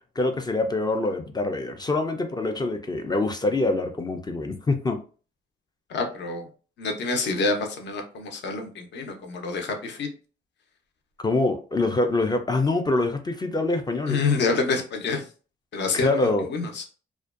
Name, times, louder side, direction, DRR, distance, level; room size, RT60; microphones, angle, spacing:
voice 1, 0.0-5.0 11.2-14.2 15.9-16.5, left 2 dB, 20° left, 0.3 m, -25 dB
voice 2, 5.9-6.5 6.8-10.1 14.0-15.3 15.7-16.8, left 4 dB, 65° left, 0.6 m, -27 dB
2.5 x 2.2 x 2.4 m
cardioid pair, 90°, 20 cm